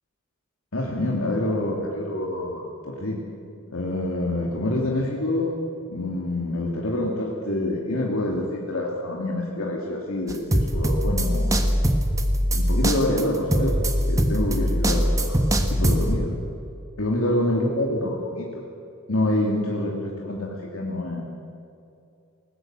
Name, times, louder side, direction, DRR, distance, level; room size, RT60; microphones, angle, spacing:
voice 1, 0.7-3.2 3.7-5.5 5.9-11.8 12.5-15.4 15.7-16.3 17.0-18.7 19.1-21.2, left 1 dB, 90° left, -2 dB, 2.7 m, -26 dB
sound 1, 10.3-16.1, equal, 15° right, 1.4 m, -22 dB
20.5 x 19.0 x 7.8 m, 2.6 s
head